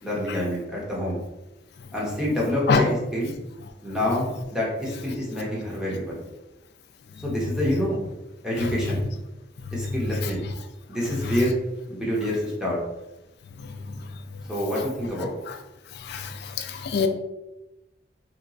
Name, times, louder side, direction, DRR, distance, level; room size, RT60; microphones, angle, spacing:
voice 1, 0.0-1.2 1.9-3.3 3.8-6.2 7.2-8.0 8.4-9.0 9.7-10.4 10.9-11.5 11.9-12.8 14.5-15.3, left 1 dB, 5° right, -5 dB, 0.9 m, -27 dB
voice 2, 16.0-17.1, left 5 dB, 65° left, 7 dB, 0.4 m, -24 dB
2.9 x 2.2 x 3.9 m, 0.99 s
head